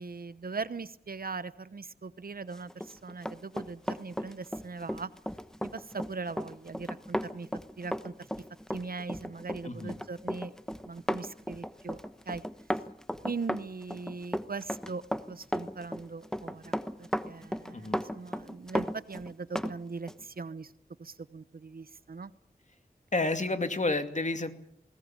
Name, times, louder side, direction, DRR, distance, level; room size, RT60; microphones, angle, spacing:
voice 1, 0.0-5.1 5.6-7.5 7.8-8.1 8.7-10.5 10.8-12.0 12.3-12.4 13.2-15.0 15.3-20.7 21.0-22.3, right 4 dB, 70° right, 15 dB, 1.0 m, -40 dB
Run, 2.7-19.7 20.1-20.2, equal, 5° left, 1.2 m, -35 dB
voice 2, 9.6-10.0 17.7-18.0 23.1-24.5, left 2 dB, 50° left, 7 dB, 2.4 m, -30 dB
20.5 x 18.5 x 8.9 m, 0.70 s
wide cardioid pair, 65°, 16 cm